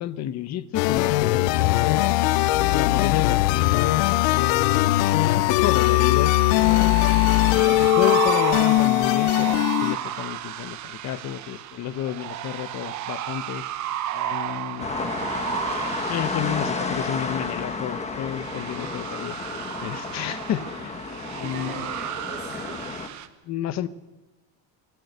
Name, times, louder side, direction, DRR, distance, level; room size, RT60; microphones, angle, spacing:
voice 1, 0.0-4.9 5.4-6.4 7.2-13.6 14.1-14.9 16.0-19.4 19.8-21.9 23.4-23.9, left 11 dB, 35° left, 14 dB, 0.9 m, -31 dB
sound 1, 0.7-10.0, left 17 dB, 85° left, 0.8 m, -20 dB
sound 2, 5.8-23.3, right 12 dB, 40° right, 1.1 m, -33 dB
sound 3, 14.8-23.1, left 4 dB, 15° left, 1.2 m, -32 dB
voice 2, 21.4-22.8, right 4 dB, 25° right, 0 dB, 4.0 m, -40 dB
23.5 x 15.5 x 8.1 m, 1.1 s
cardioid pair, 175°, 45 cm